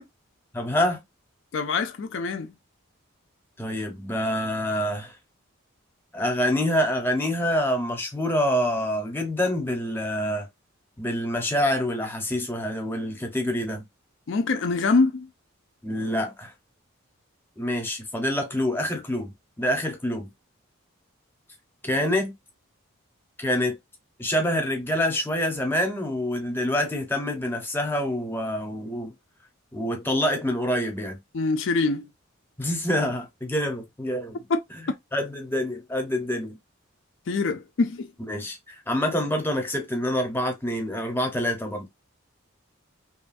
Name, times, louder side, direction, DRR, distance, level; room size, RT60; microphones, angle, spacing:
voice 1, 0.5-1.0 3.6-5.1 6.1-10.5 11.0-13.8 15.8-16.5 17.6-19.3 19.6-20.3 21.8-22.3 23.4-23.8 24.2-29.1 29.7-31.2 32.6-34.4 35.1-36.6 38.3-41.9, left 1 dB, 10° left, 0.8 m, -26 dB
voice 2, 1.5-2.5 14.3-15.3 31.3-32.1 34.5-34.6 37.3-38.1, left 3 dB, 60° left, 0.4 m, -24 dB
3.0 x 2.3 x 2.5 m
head